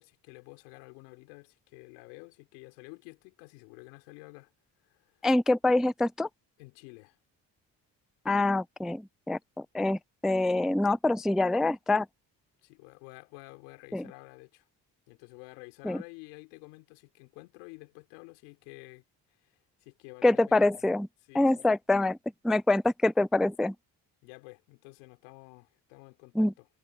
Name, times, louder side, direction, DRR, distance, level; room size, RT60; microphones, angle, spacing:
voice 1, 0.0-4.5 4.8-5.3 6.6-7.2 12.6-14.7 15.1-20.9 21.2-21.7 24.2-26.7, left 28 dB, 90° left, 3.9 m, -51 dB
voice 2, 5.2-6.3 8.3-12.1 13.9-14.0 15.9-16.0 20.2-21.1 21.3-22.2 22.4-23.7 26.4-26.5, left 2 dB, ahead, 0.3 m, -25 dB
hypercardioid pair, 55°, 47 cm